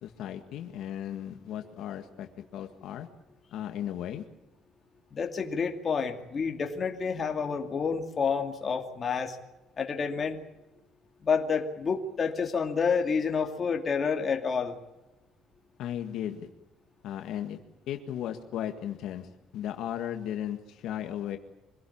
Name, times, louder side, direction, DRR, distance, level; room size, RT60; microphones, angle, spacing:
voice 1, 0.0-3.1 3.5-4.2 15.8-16.5 17.0-17.6 17.9-21.4, left 10 dB, 60° left, 6 dB, 1.9 m, -36 dB
voice 2, 5.1-9.4 9.8-10.4 11.2-14.8, left 5 dB, 25° left, 4 dB, 2.4 m, -29 dB
25.0 x 17.5 x 8.7 m, 0.98 s
cardioid pair, 160°, 0 cm